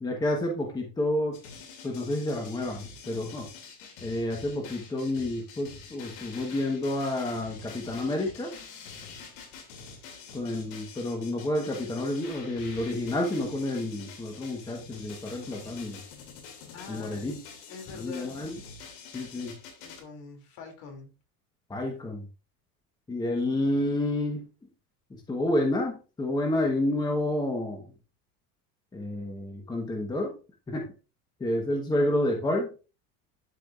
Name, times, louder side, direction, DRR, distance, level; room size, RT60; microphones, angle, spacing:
voice 1, 0.0-1.4 1.8-3.5 4.0-8.5 10.3-16.0 16.9-17.4 17.9-18.5 19.1-19.5 21.7-22.3 23.1-24.4 25.1-27.9 28.9-30.4 30.7-30.9 31.4-32.7, left 1 dB, 10° left, 2 dB, 1.0 m, -29 dB
sound 1, 1.3-20.0, left 5 dB, 70° left, 2.6 m, -46 dB
voice 2, 16.7-17.3 17.7-18.4 19.3-19.4 19.8-21.1, left 5 dB, 55° left, 4 dB, 2.6 m, -44 dB
12.0 x 4.9 x 2.4 m, 0.32 s
cardioid pair, 155°, 43 cm